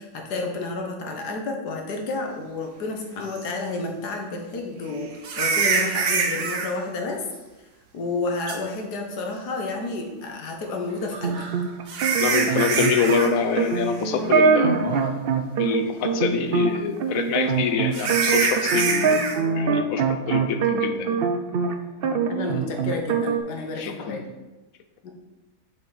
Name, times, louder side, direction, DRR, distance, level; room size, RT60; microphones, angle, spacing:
voice 1, 0.0-7.2 7.9-11.5 22.0-24.2 25.0-25.1, left 3 dB, 85° left, 2 dB, 1.7 m, -30 dB
sound 1, 3.4-3.5 5.2-6.7 8.5-8.6 11.1-13.3 13.6-13.9 14.3-14.4 15.0-15.1 17.9-19.4, right 5 dB, 55° right, 1.0 m, -25 dB
sound 2, 11.2-21.7 22.0-23.4, right 5 dB, 80° right, 0.5 m, -23 dB
voice 2, 12.2-14.8 15.6-19.1 19.4-21.2 23.8-24.3, left 7 dB, 65° left, 7 dB, 1.1 m, -26 dB
6.7 x 5.6 x 4.0 m, 1.1 s
omnidirectional pair, 1.7 m